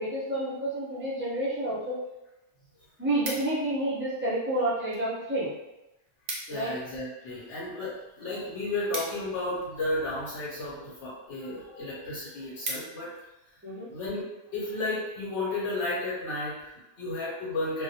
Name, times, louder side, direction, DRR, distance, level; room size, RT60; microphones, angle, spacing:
voice 1, 0.0-2.0 3.0-5.5 6.5-6.7 13.6-13.9, right 1 dB, 15° right, -7 dB, 0.5 m, -29 dB
sound 1, 2.1-2.2 2.5-3.8 4.5-5.1 5.4-5.5 5.7-5.8 6.1-6.7 7.0-9.9 10.6-10.9 11.4-11.5 11.9-12.0 12.3-13.3 13.7-14.0, right 2 dB, 60° right, 0.7 m, -39 dB
voice 2, 6.5-13.1 13.5-13.6 13.9-14.2 14.5-17.8, left 2 dB, 85° left, -8 dB, 1.0 m, -33 dB
2.2 x 2.1 x 2.7 m, 0.96 s
omnidirectional pair, 1.2 m